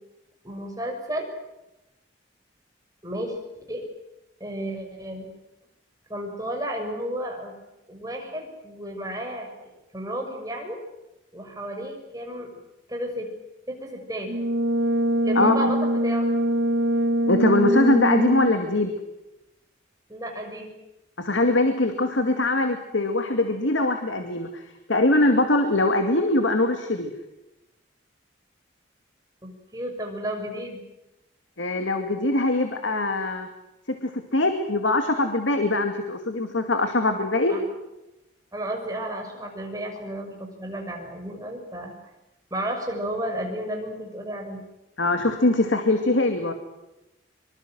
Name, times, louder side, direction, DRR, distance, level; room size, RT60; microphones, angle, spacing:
voice 1, 0.4-1.3 3.0-3.4 3.7-3.9 4.4-5.3 6.1-7.6 7.9-9.5 9.9-10.8 11.3-12.5 12.9-13.3 13.7-14.3 15.2-16.3 20.1-20.7 29.4-30.8 37.5-37.6 38.5-41.9 42.5-44.6, right 1 dB, 20° right, 2 dB, 6.4 m, -32 dB
Brass instrument, 14.3-18.6, right 1 dB, 70° right, 1.2 m, -23 dB
voice 2, 15.4-15.7 17.3-18.9 21.2-24.6 24.9-27.1 31.6-33.5 34.0-37.6 45.0-46.5, left 2 dB, 85° left, 6 dB, 2.3 m, -22 dB
25.0 x 25.0 x 7.8 m, 0.95 s
head